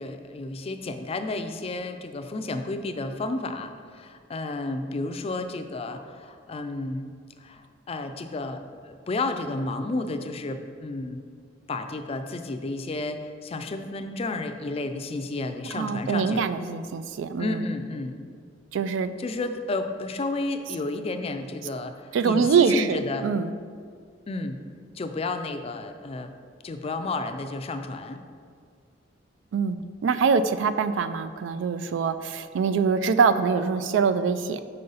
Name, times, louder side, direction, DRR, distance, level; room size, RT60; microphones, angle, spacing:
voice 1, 0.0-7.1 7.4-11.3 11.7-16.5 17.4-18.2 19.2-23.3 24.3-24.6 24.9-26.3 26.6-28.2, left 2 dB, 35° left, 7 dB, 0.4 m, -32 dB
voice 2, 15.7-17.6 18.7-19.1 22.1-23.5 29.5-34.6, right 5 dB, 80° right, 12 dB, 0.3 m, -24 dB
5.6 x 5.3 x 3.9 m, 2.1 s
head